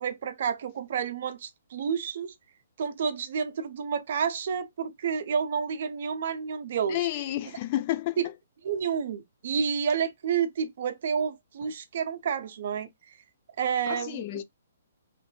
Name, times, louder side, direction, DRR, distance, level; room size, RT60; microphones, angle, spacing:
voice 1, 0.0-2.3 2.8-7.1 8.2-8.3 8.6-12.9 13.6-14.4, right 7 dB, 55° right, 0.5 m, -30 dB
voice 2, 6.9-8.2 13.9-14.4, left 14 dB, 40° left, 0.3 m, -30 dB
2.6 x 2.6 x 2.2 m
hypercardioid pair, 135°, 0 cm